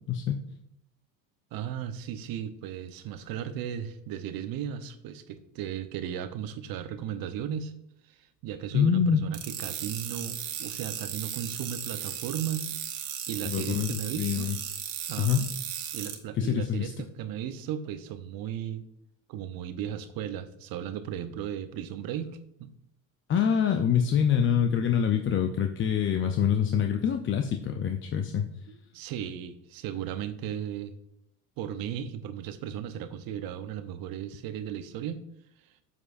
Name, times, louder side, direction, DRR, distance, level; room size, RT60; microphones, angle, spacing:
voice 1, 0.1-0.4 8.7-9.2 13.4-14.6 15.2-15.5 16.3-16.9 23.3-28.4, left 8 dB, 25° left, 5 dB, 0.6 m, -25 dB
voice 2, 1.5-7.7 8.0-12.7 13.3-14.5 15.1-15.5 15.9-18.8 19.3-22.7 28.7-30.9 31.6-35.2 35.6-35.7, right 9 dB, 45° right, 10 dB, 0.8 m, -36 dB
sound 1, 9.3-16.1, right 9 dB, 65° right, 1.6 m, -36 dB
8.0 x 7.4 x 2.5 m, 0.79 s
hypercardioid pair, 75°, 48 cm